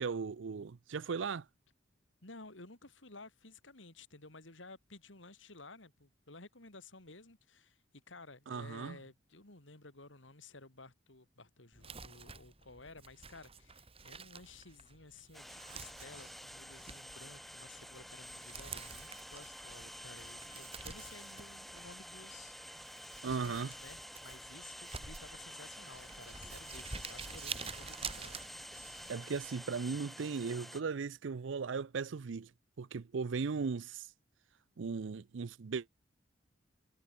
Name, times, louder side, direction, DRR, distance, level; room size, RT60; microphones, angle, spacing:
voice 1, 0.0-1.5 8.5-9.0 23.2-23.7 29.1-32.5 32.8-34.1 34.8-35.9, right 5 dB, 75° right, 0.5 m, -37 dB
voice 2, 2.2-22.9 23.2-28.4, left 3 dB, 80° left, 3.9 m, -54 dB
Crumpling crinkling, 11.7-29.1, right 5 dB, 30° right, 5.6 m, -49 dB
sound 1, 15.3-30.8, equal, ahead, 1.4 m, -49 dB
head